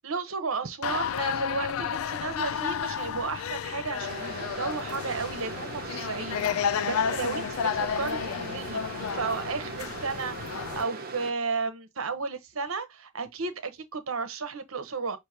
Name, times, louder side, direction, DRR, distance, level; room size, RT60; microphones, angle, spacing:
voice 1, 0.0-15.2, right 4 dB, 75° right, 1.0 m, -33 dB
sound 1, 0.8-10.8, left 7 dB, 85° left, 0.4 m, -32 dB
sound 2, 4.0-11.3, right 4 dB, 45° right, 0.9 m, -39 dB
6.2 x 2.8 x 2.8 m
head